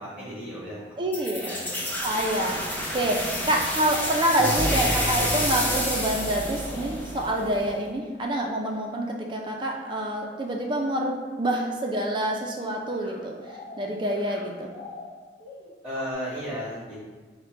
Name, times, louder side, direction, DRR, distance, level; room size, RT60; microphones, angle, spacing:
voice 1, 0.0-1.0 1.3-1.9 3.0-3.4 15.8-17.0, equal, 5° right, -9 dB, 1.0 m, -35 dB
voice 2, 1.0-1.5 2.0-2.6 2.9-3.2 3.5-13.4 13.8-14.7, right 1 dB, 25° right, 1 dB, 0.4 m, -27 dB
sound 1, 1.1-7.7, equal, 10° left, 0.6 m, -29 dB
sound 2, 4.9-7.7 9.6-9.7 10.3-11.0 12.1-12.6 12.9-16.1, left 2 dB, 80° left, 1.0 m, -45 dB
5.0 x 2.2 x 4.3 m, 1.4 s
head